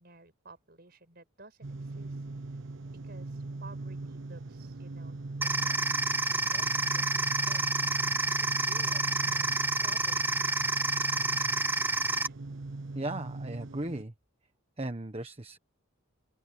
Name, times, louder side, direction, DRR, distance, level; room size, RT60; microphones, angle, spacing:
voice 1, 0.0-2.6 3.0-6.7 6.9-7.6 8.5-9.5 9.8-10.5 12.2-12.4, right 3 dB, 50° right, 6.2 m, -54 dB
sound 1, 1.6-14.0, right 2 dB, 65° right, 0.6 m, -40 dB
sound 2, 5.4-12.3, right 2 dB, 10° right, 0.8 m, -29 dB
voice 2, 12.9-14.1 14.8-15.6, right 1 dB, 30° right, 1.3 m, -36 dB
open air
head